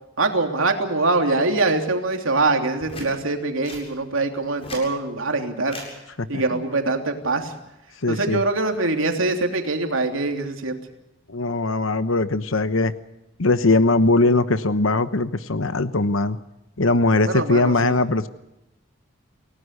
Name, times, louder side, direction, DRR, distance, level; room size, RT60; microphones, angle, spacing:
voice 1, 0.2-5.8 6.3-7.5 8.1-10.8 17.2-17.9, right 3 dB, 80° right, 4 dB, 3.1 m, -23 dB
sound 1, 2.8-3.1 3.6-3.9 4.4-4.9 5.7-5.9 7.2-7.5, left 1 dB, 30° left, 7.7 m, -37 dB
voice 2, 6.2-6.6 8.0-8.4 11.3-12.9 13.4-16.4 16.8-18.3, left 2 dB, 75° left, 12 dB, 1.1 m, -20 dB
28.5 x 18.0 x 6.7 m, 0.93 s
head